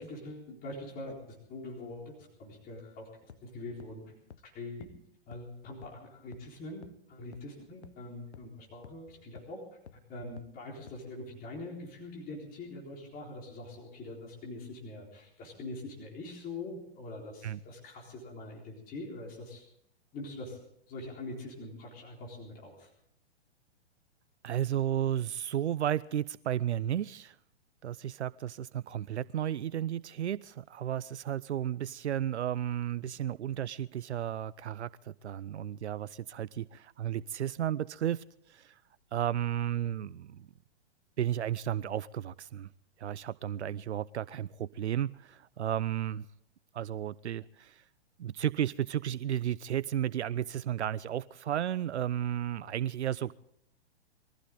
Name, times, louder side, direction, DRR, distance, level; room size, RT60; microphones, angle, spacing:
voice 1, 0.0-4.1 4.4-4.9 5.3-9.6 9.9-19.7 20.1-20.6 20.9-22.9, left 2 dB, 25° left, -1 dB, 4.1 m, -43 dB
sound 1, 3.3-3.4 3.8-3.9 4.3-4.4 4.8-4.9 5.3-5.4 5.8-5.9 6.3-6.4 6.8-6.9 7.3-7.4 7.8-7.9 8.3-8.4 8.8-8.9 9.4-9.5 9.9-10.0 10.4-10.5 10.9-11.0, left 7 dB, 85° left, 0.7 m, -50 dB
voice 2, 24.4-27.4 27.8-38.8 39.1-40.4 41.2-42.7 43.0-46.3 46.7-47.8 48.2-53.3, right 11 dB, 85° right, 19 dB, 0.5 m, -33 dB
22.0 x 15.0 x 3.8 m, 0.73 s
hypercardioid pair, 115°, 33 cm